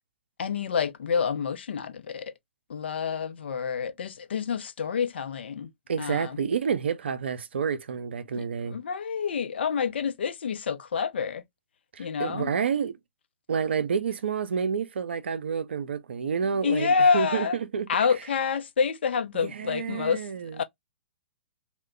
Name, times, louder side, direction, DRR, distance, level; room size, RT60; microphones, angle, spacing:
voice 1, 0.4-2.3 2.7-5.7 6.0-6.4 8.3-11.4 12.0-12.5 16.6-17.6 17.9-20.2 20.5-20.6, left 6 dB, 65° left, 0.6 m, -28 dB
voice 2, 5.9-8.8 11.9-13.0 13.5-17.9 19.4-20.6, right 6 dB, 65° right, 0.5 m, -29 dB
2.1 x 2.1 x 3.6 m
figure-of-eight pair, 115°, 6 cm